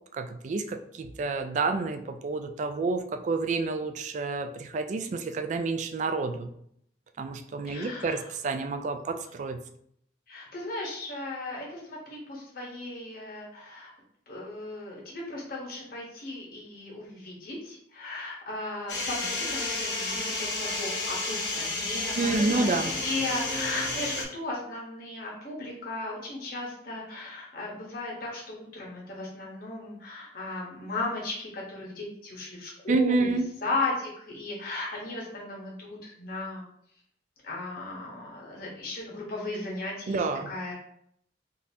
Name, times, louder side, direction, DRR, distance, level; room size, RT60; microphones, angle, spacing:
voice 1, 0.1-6.5 7.2-9.6 22.2-22.9 32.9-33.5 40.1-40.5, right 3 dB, 45° right, 8 dB, 0.3 m, -29 dB
voice 2, 7.6-8.3 10.3-13.9 14.3-22.7 23.0-33.4 33.6-36.6 37.4-40.7, left 2 dB, 55° left, -3 dB, 1.0 m, -36 dB
sound 1, 18.9-24.2, left 2 dB, 80° left, 0.9 m, -31 dB
3.8 x 2.5 x 2.7 m, 0.69 s
head